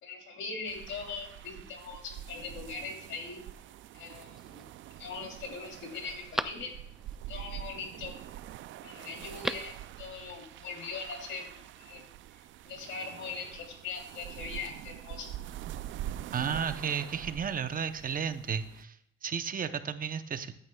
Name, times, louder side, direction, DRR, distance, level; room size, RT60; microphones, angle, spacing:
voice 1, 0.0-3.4 3.9-4.6 5.0-6.7 7.3-8.2 8.8-12.0 12.6-15.3, left 4 dB, 75° left, 2 dB, 3.0 m, -41 dB
sound 1, 0.7-18.8, right 12 dB, 75° right, 0.4 m, -45 dB
Telephone, 4.0-4.6 5.2-5.3 5.6-7.2 9.2-9.8 10.1-10.2, equal, ahead, 0.4 m, -38 dB
voice 2, 16.3-19.0 19.2-20.5, right 7 dB, 45° right, 10 dB, 0.8 m, -33 dB
15.0 x 9.9 x 2.3 m, 0.73 s
cardioid pair, 90°, 20 cm